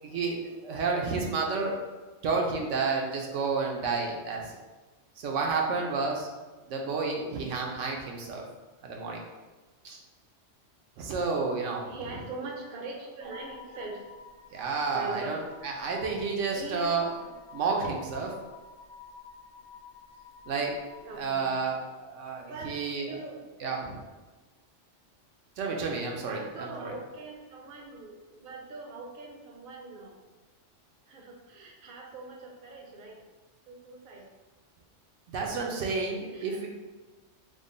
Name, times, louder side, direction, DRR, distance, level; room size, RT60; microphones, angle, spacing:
voice 1, 0.0-1.8 2.2-4.6 5.2-6.3 6.7-8.4 8.8-9.2 9.8-10.0 11.0-12.2 14.5-17.1 17.5-18.3 20.5-20.7 21.2-23.1 23.6-24.0 25.6-26.9 35.3-36.7, right 4 dB, 80° right, 0 dB, 1.0 m, -31 dB
voice 2, 11.8-14.1 14.9-15.4 16.5-16.9 21.0-21.5 22.4-22.8 23.1-23.4 26.2-30.3 31.1-33.2 33.7-34.3 36.3-36.6, right 3 dB, 55° right, 0 dB, 0.7 m, -42 dB
sound 1, 13.2-21.3, left 6 dB, 75° left, 1.1 m, -50 dB
3.7 x 2.1 x 3.7 m, 1.3 s
omnidirectional pair, 1.2 m